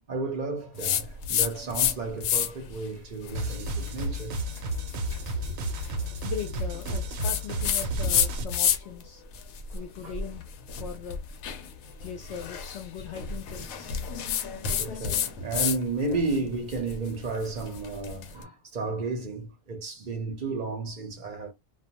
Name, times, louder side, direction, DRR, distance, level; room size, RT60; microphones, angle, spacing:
voice 1, 0.1-4.4 5.3-6.0 9.7-10.1 14.8-21.5, right 3 dB, 45° right, 0.6 m, -33 dB
sound 1, 0.8-1.9 2.2-2.7 3.2-9.0 9.3-15.8 16.1-18.3, left 8 dB, 90° left, 1.0 m, -30 dB
sound 2, 3.3-8.4, right 2 dB, 90° right, 1.0 m, -33 dB
voice 2, 6.2-9.2 9.7-10.5 10.8-11.2 12.0-14.0, left 7 dB, 65° left, 0.8 m, -39 dB
2.4 x 2.2 x 2.8 m
omnidirectional pair, 1.4 m